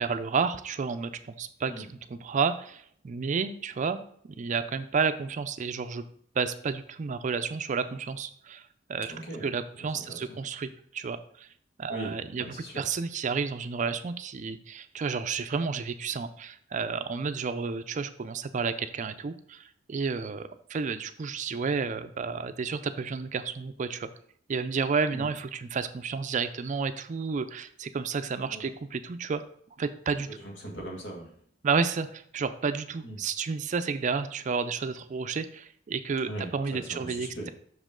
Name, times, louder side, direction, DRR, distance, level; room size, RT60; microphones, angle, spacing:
voice 1, 0.0-6.0 6.4-8.6 8.9-9.1 9.4-11.5 11.8-12.5 12.8-24.1 24.5-29.4 29.8-30.3 31.6-37.5, right 5 dB, 40° right, 11 dB, 0.4 m, -31 dB
voice 2, 9.1-10.4 11.9-12.9 25.1-25.3 28.5-28.7 30.3-31.3 33.0-33.2 36.2-37.5, right 1 dB, 75° left, -1 dB, 2.0 m, -40 dB
6.1 x 5.2 x 3.7 m, 0.62 s
head